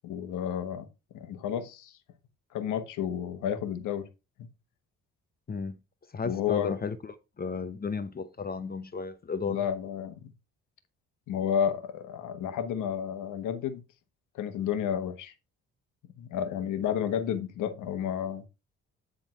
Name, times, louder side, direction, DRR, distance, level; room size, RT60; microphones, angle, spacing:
voice 1, 0.0-0.9 1.1-2.0 2.5-4.1 4.4-4.5 6.2-6.8 9.5-10.3 11.3-13.8 14.3-15.3 16.2-18.4, left 9 dB, 85° left, 1.3 m, -31 dB
voice 2, 6.1-9.6, left 5 dB, 30° left, 0.8 m, -34 dB
10.0 x 3.8 x 4.5 m
cardioid pair, 90°, 30 cm